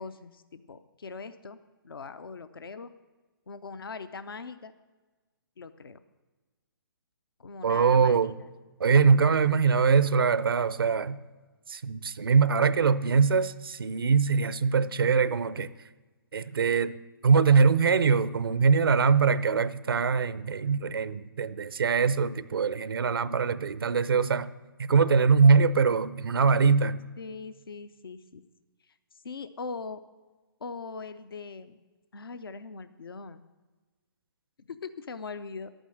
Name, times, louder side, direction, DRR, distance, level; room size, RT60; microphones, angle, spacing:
voice 1, 0.0-1.6 1.8-2.9 3.5-4.7 5.6-6.0 7.4-8.5 27.2-28.4 28.9-29.0 29.2-30.0 30.6-31.8 32.1-33.4 34.7-35.7, left 4 dB, 75° left, 0.6 m, -41 dB
voice 2, 7.6-8.4 8.8-11.2 11.7-15.7 16.3-16.9 17.2-24.5 24.8-27.0, right 5 dB, 75° right, 0.6 m, -23 dB
11.5 x 8.9 x 6.3 m
figure-of-eight pair, 135°, 12 cm